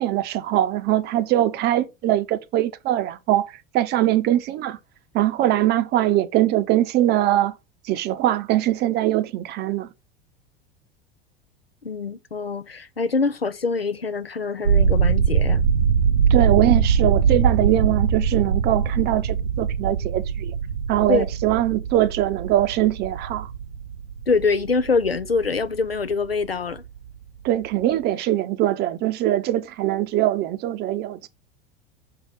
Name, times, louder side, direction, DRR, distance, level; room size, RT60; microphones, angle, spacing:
voice 1, 0.0-4.8 5.1-7.6 7.8-9.9 16.3-20.6 20.9-23.5 27.4-31.3, right 13 dB, 35° right, 0.7 m, -22 dB
voice 2, 11.8-15.6 21.1-21.2 24.3-26.8, left 4 dB, 90° left, 0.6 m, -24 dB
sound 1, 14.7-26.5 26.8-27.2 27.5-27.7, right 6 dB, 80° right, 1.0 m, -22 dB
6.7 x 3.8 x 5.0 m
figure-of-eight pair, 80°, 29 cm